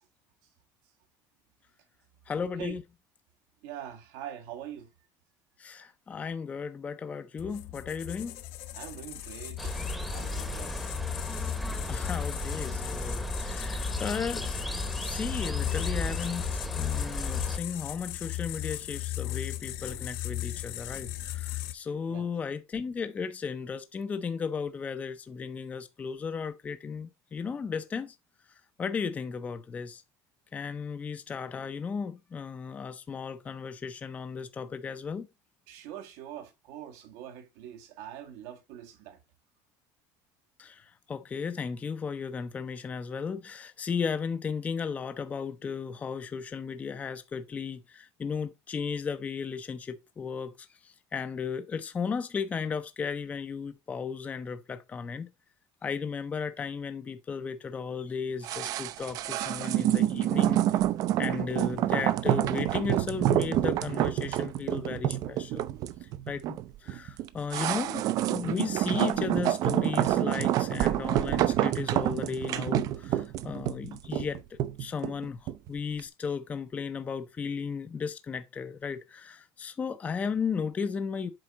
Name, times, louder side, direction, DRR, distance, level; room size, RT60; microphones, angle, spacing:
voice 1, 2.3-2.8 5.6-8.4 11.9-28.2 28.8-30.0 30.5-35.3 40.6-50.5 50.8-55.3 55.8-60.6 61.2-65.7 66.3-68.0 68.3-74.4 74.8-81.3, left 6 dB, 15° left, 0.5 m, -35 dB
voice 2, 3.6-4.9 5.7-5.9 8.7-10.7 22.1-22.3 35.7-39.2, right 10 dB, 85° right, 1.7 m, -43 dB
sound 1, 7.4-21.7, left 16 dB, 70° left, 1.1 m, -37 dB
sound 2, 9.6-17.6, left 1 dB, ahead, 0.9 m, -35 dB
sound 3, 58.4-75.7 76.0-76.1, right 13 dB, 45° right, 0.5 m, -28 dB
7.7 x 4.8 x 4.0 m
cardioid pair, 175°, 9 cm